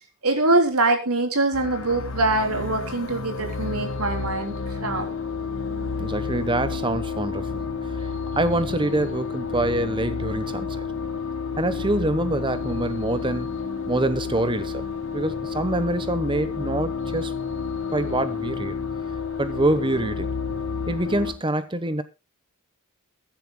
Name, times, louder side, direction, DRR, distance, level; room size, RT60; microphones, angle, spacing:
voice 1, 0.2-4.5 4.8-5.1, right 2 dB, 90° right, 3.5 m, -23 dB
sound 1, 1.5-21.3, left 5 dB, 60° left, 1.6 m, -30 dB
voice 2, 6.0-7.6 8.3-10.8 11.6-13.6 13.9-14.8 15.1-17.3 17.9-18.7 19.4-20.3 20.9-22.0, right 1 dB, 20° right, 1.0 m, -25 dB
22.5 x 10.0 x 2.2 m
head